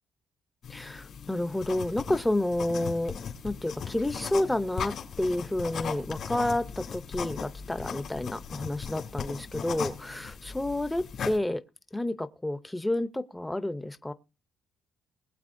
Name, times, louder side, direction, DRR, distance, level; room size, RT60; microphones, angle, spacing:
sound 1, 0.6-11.4, left 7 dB, 65° left, 2.3 m, -38 dB
voice 1, 0.7-11.6 11.9-14.1, left 1 dB, 10° left, 0.6 m, -30 dB
21.0 x 7.9 x 2.6 m
cardioid pair, 90°, 0 cm